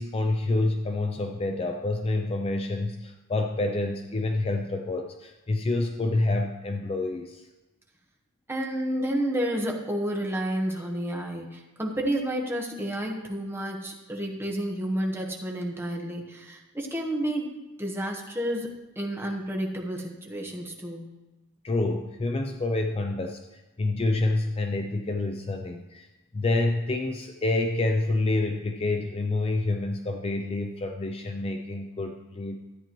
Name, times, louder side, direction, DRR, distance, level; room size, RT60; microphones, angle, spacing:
voice 1, 0.0-7.4 21.6-26.0 26.3-32.6, left 2 dB, 25° left, 4 dB, 0.4 m, -28 dB
voice 2, 8.5-21.1, right 1 dB, 10° right, 0 dB, 1.1 m, -30 dB
13.0 x 8.8 x 3.0 m, 1.1 s
head